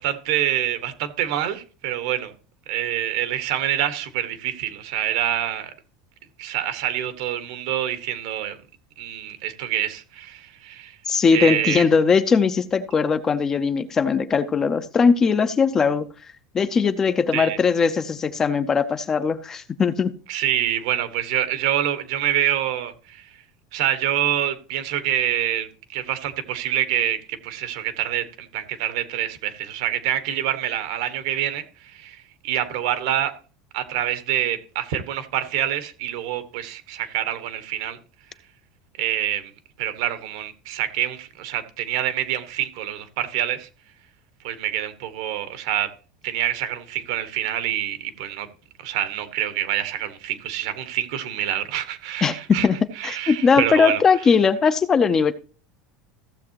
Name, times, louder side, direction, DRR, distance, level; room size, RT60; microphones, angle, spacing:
voice 1, 0.0-2.3 2.7-5.7 6.4-8.6 9.0-11.0 11.3-11.8 17.3-17.6 20.3-23.3 23.7-33.3 33.7-38.0 39.0-39.5 39.8-43.7 44.4-45.9 46.2-48.5 48.8-52.7 53.0-54.0, right 11 dB, 70° right, 1.4 m, -26 dB
voice 2, 11.1-16.1 16.5-20.1 52.2-52.8 53.0-55.3, left 5 dB, 20° left, 0.5 m, -20 dB
15.0 x 7.4 x 2.9 m
cardioid pair, 165°, 3 cm